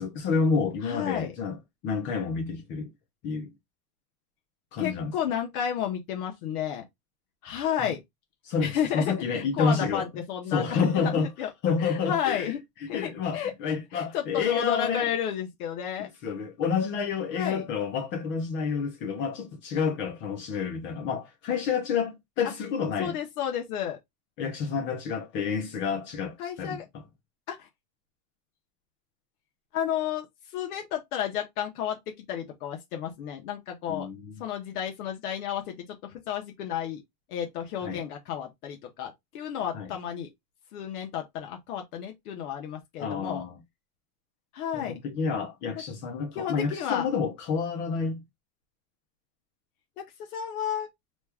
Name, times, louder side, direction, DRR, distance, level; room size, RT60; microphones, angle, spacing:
voice 1, 0.0-2.9 3.2-3.5 4.7-5.1 7.8-7.9 8.4-10.1 10.5-11.3 11.6-12.5 12.8-15.1 16.0-23.2 24.4-27.0 33.9-34.3 37.8-38.0 39.7-39.9 43.0-43.6 44.7-48.2, left 5 dB, 25° left, 0.5 m, -29 dB
voice 2, 0.8-1.3 4.8-6.8 7.4-8.0 8.6-11.5 11.8-12.6 12.9-13.5 13.9-16.1 17.3-17.6 23.0-24.0 26.4-26.8 27.5-27.7 29.7-30.3 30.5-34.1 34.4-37.0 37.3-40.3 40.7-43.4 44.5-45.0 46.3-47.1 50.3-50.9, left 9 dB, 60° left, 1.0 m, -32 dB
3.0 x 2.3 x 3.4 m
supercardioid pair, 160°, 48 cm